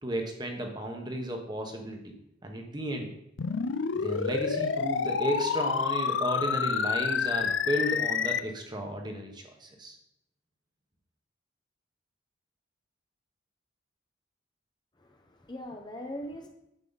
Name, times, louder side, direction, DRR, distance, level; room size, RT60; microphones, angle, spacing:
voice 1, 0.0-2.1 2.4-3.1 3.9-10.0, right 1 dB, 20° right, 3 dB, 1.1 m, -33 dB
sound 1, 3.4-8.4, left 6 dB, 70° left, 0.5 m, -28 dB
voice 2, 14.9-16.5, equal, 20° left, 3 dB, 0.8 m, -41 dB
9.0 x 7.5 x 4.0 m, 0.81 s
head